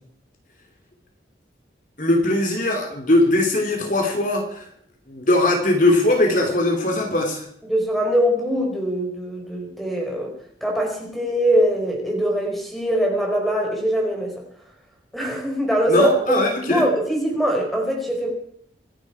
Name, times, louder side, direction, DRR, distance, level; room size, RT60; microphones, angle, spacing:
voice 1, 2.0-4.6 5.1-7.5 15.9-16.9, left 1 dB, 45° left, 2 dB, 3.0 m, -20 dB
voice 2, 7.7-10.3 10.6-14.3 15.1-16.1 16.7-18.3, equal, ahead, 0 dB, 4.6 m, -22 dB
26.0 x 11.5 x 4.8 m, 0.66 s
head